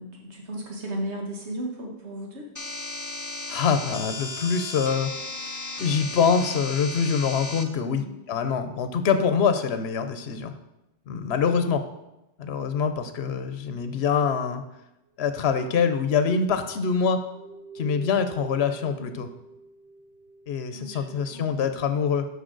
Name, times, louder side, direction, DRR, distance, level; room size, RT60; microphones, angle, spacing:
voice 1, 0.0-2.5 7.7-8.2 11.2-11.5 19.0-19.2 20.7-21.9, right 1 dB, 80° right, -1 dB, 1.7 m, -36 dB
sound 1, 2.6-7.6, left 2 dB, 20° left, 0.6 m, -35 dB
voice 2, 3.5-10.5 11.1-11.8 12.4-14.6 15.2-17.2 17.7-19.3 20.5-22.3, left 6 dB, 70° left, 9 dB, 1.0 m, -25 dB
sound 2, 17.2-21.9, right 3 dB, 30° right, 1.1 m, -46 dB
12.5 x 5.4 x 3.9 m, 0.90 s
omnidirectional pair, 1.1 m